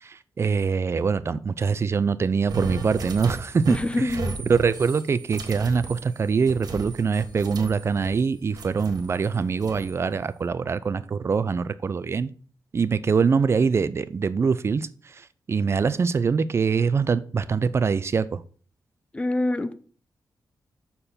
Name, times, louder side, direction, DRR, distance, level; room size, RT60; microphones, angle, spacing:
voice 1, 0.0-4.2 4.5-12.3 12.7-18.4, right 5 dB, 40° right, 0.4 m, -24 dB
sound 1, 2.5-8.2 8.5-9.9, right 3 dB, 65° right, 1.3 m, -35 dB
voice 2, 3.7-4.3 19.1-19.7, left 2 dB, 15° left, 0.6 m, -25 dB
6.8 x 4.4 x 5.6 m
wide cardioid pair, 135°, 7 cm